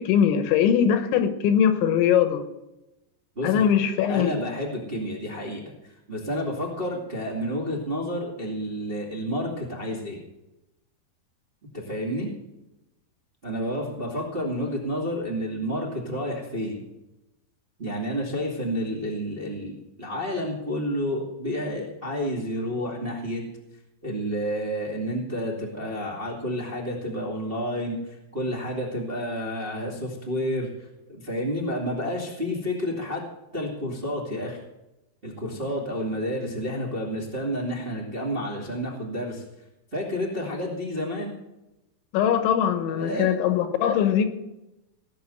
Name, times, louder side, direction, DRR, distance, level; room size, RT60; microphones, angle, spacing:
voice 1, 0.0-2.4 3.4-4.4 42.1-44.3, left 8 dB, 80° left, 9 dB, 3.4 m, -21 dB
voice 2, 4.1-10.2 11.7-12.3 13.4-16.8 17.8-23.4 24.0-33.2 33.5-34.6 35.2-39.4 39.9-41.3 42.9-43.3, equal, 20° right, -2 dB, 1.4 m, -30 dB
18.5 x 6.8 x 7.9 m, 0.94 s
omnidirectional pair, 5.4 m